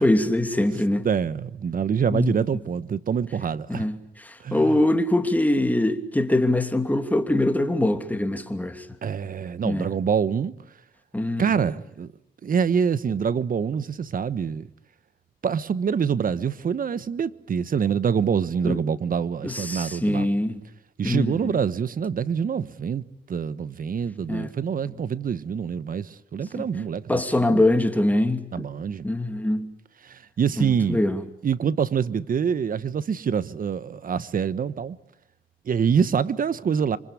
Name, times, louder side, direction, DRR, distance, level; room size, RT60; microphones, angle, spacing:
voice 1, 0.0-1.1 2.1-2.3 3.7-4.0 4.5-8.8 9.6-9.9 11.1-11.5 18.6-18.8 19.4-20.6 21.0-21.5 24.3-24.5 26.5-26.7 27.1-28.7 29.0-29.7 30.6-31.2, left 1 dB, 10° left, 2.8 m, -23 dB
voice 2, 1.0-3.9 4.4-4.8 9.0-10.5 11.4-12.1 12.4-14.7 15.4-20.3 21.0-27.6 28.5-29.1 30.0-31.0 31.4-35.0 35.6-37.0, right 7 dB, 45° right, 1.2 m, -25 dB
26.5 x 25.5 x 8.5 m
cardioid pair, 90°, 20 cm